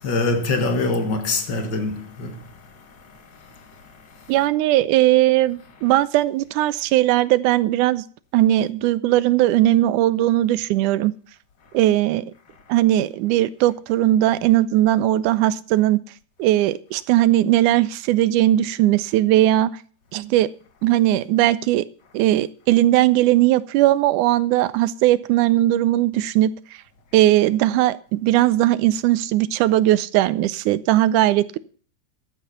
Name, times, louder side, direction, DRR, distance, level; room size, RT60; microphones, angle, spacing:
voice 1, 0.0-4.5 5.8-6.0, left 3 dB, 45° left, 1.8 m, -26 dB
voice 2, 4.3-8.0 8.3-11.1 11.7-12.3 12.7-16.0 16.4-19.7 20.1-20.5 20.8-21.9 22.1-26.5 27.1-31.6, right 14 dB, 90° right, 2.2 m, -18 dB
12.5 x 8.4 x 5.7 m
omnidirectional pair, 3.5 m